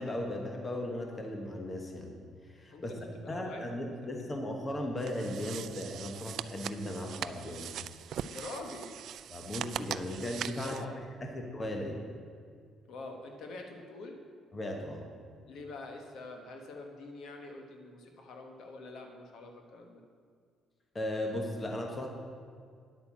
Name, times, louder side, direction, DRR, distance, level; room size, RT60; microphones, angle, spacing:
voice 1, 0.0-2.2 2.5-3.0 3.3-7.7 9.3-12.0 14.5-15.1 20.9-22.1, left 1 dB, 20° left, 2 dB, 1.2 m, -37 dB
voice 2, 2.7-3.7 4.0-4.1 8.3-8.9 10.5-11.1 12.9-14.2 15.5-20.0, left 2 dB, 60° left, 3 dB, 1.4 m, -45 dB
sound 1, 5.0-10.8, right 10 dB, 55° right, 0.3 m, -41 dB
9.8 x 8.8 x 7.4 m, 2.2 s
cardioid pair, 165°, 0 cm